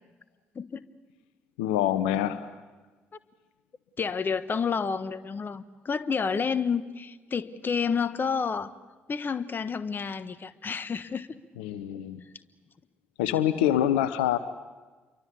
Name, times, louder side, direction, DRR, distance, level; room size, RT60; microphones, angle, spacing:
voice 1, 1.6-2.5 11.6-12.2 13.2-14.4, left 11 dB, 75° left, 13 dB, 0.9 m, -25 dB
voice 2, 4.0-8.7 9.1-11.3, left 6 dB, 35° left, 13 dB, 1.3 m, -29 dB
29.0 x 23.5 x 8.4 m, 1.3 s
figure-of-eight pair, 45°, 6 cm